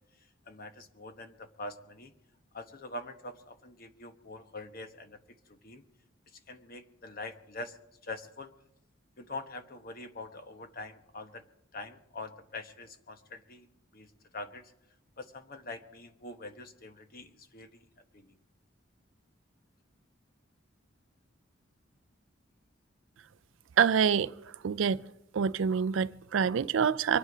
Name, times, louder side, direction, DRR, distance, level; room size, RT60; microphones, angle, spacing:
voice 1, 0.5-2.1 2.5-5.2 5.5-5.8 6.5-7.8 8.0-8.5 9.2-11.4 11.7-13.7 13.9-14.7 15.2-17.9 18.1-18.3, left 2 dB, 50° left, 1.1 m, -44 dB
voice 2, 23.8-24.3 24.6-25.0 25.3-27.2, right 7 dB, 75° right, 0.4 m, -26 dB
24.0 x 9.0 x 5.0 m
head